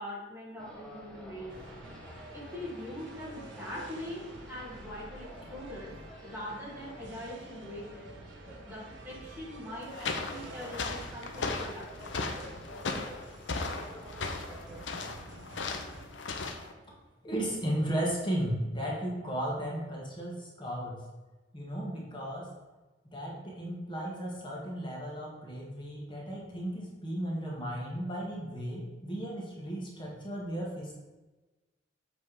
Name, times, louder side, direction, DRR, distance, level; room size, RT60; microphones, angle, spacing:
voice 1, 0.0-1.5 2.3-5.9 6.2-8.1 8.6-12.1, equal, 10° right, -5 dB, 1.6 m, -42 dB
sound 1, 0.6-14.8, equal, 5° left, 1.2 m, -49 dB
sound 2, 1.5-16.1, right 2 dB, 75° right, 0.9 m, -51 dB
sound 3, 9.8-16.7, left 3 dB, 75° left, 0.7 m, -37 dB
voice 2, 17.2-21.0 21.5-22.5 23.1-30.9, equal, 25° left, -3 dB, 1.6 m, -35 dB
7.5 x 3.5 x 4.8 m, 1.2 s
head